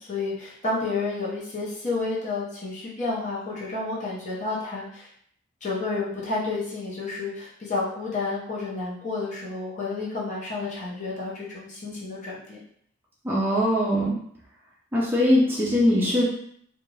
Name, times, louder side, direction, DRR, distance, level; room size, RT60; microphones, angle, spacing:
voice 1, 0.0-5.1 5.6-12.6, left 3 dB, 40° left, -6 dB, 0.7 m, -30 dB
voice 2, 13.2-14.2 14.9-16.2, left 1 dB, 10° right, -6 dB, 0.4 m, -21 dB
2.4 x 2.2 x 3.1 m, 0.65 s
head